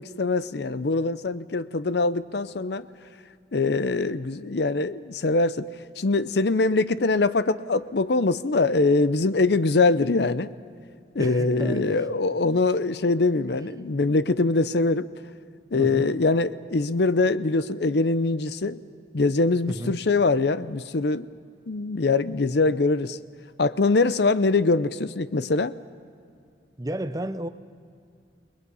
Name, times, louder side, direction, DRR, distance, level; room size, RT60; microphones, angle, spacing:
voice 1, 0.0-2.9 3.5-5.7 6.0-10.5 11.1-15.1 15.7-18.8 19.1-21.3 21.7-23.2 23.6-25.7, left 3 dB, 60° left, 0.6 m, -23 dB
voice 2, 11.2-12.0 15.8-16.1 19.7-20.0 26.8-27.5, right 1 dB, 20° right, 0.6 m, -32 dB
29.5 x 20.5 x 5.5 m
head